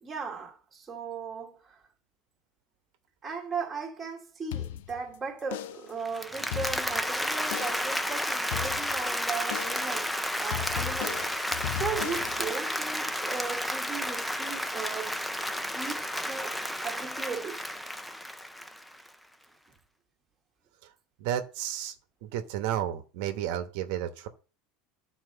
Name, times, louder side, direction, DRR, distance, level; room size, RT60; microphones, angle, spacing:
voice 1, 0.0-1.8 3.2-10.1 10.4-15.2 15.5-17.7, right 5 dB, 15° right, 1.8 m, -37 dB
sound 1, 4.5-5.1 5.5-6.0 6.4-7.1 7.5-8.0 8.5-9.1 9.5-10.0 10.5-12.5, left 11 dB, 90° left, 0.5 m, -37 dB
Applause, 6.0-19.1, equal, ahead, 0.5 m, -32 dB
voice 2, 21.2-21.9 22.2-24.3, right 11 dB, 65° right, 1.0 m, -32 dB
12.0 x 4.4 x 5.5 m
supercardioid pair, 155°, 0 cm